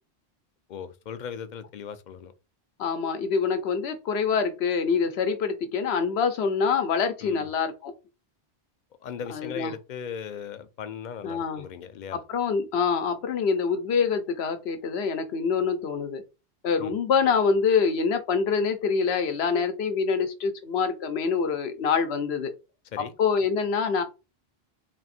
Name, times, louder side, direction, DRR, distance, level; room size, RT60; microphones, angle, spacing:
voice 1, 0.7-2.3 7.2-7.5 9.0-12.2 16.8-17.0 22.9-23.1, left 7 dB, 55° left, 0.5 m, -38 dB
voice 2, 2.8-7.9 9.3-9.7 11.2-11.7 12.3-16.2 16.6-22.5 23.2-24.0, left 5 dB, 80° left, 1.0 m, -25 dB
3.5 x 2.5 x 4.1 m
omnidirectional pair, 1.1 m